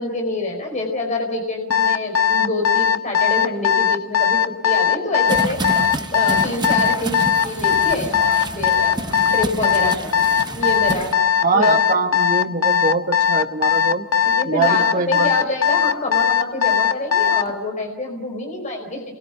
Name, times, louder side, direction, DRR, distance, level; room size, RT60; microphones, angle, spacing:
voice 1, 0.0-5.6 6.0-9.0 9.3-11.1 11.5-11.8 14.2-19.0, left 1 dB, 35° left, 2 dB, 4.8 m, -26 dB
Alarm, 1.7-17.5, left 8 dB, 70° left, 0.9 m, -18 dB
sound 1, 5.3-11.1, right 2 dB, 20° right, 0.9 m, -29 dB
voice 2, 11.4-14.1 14.5-15.3, right 3 dB, 40° right, 5 dB, 1.7 m, -22 dB
30.0 x 22.5 x 6.0 m, 1.0 s
head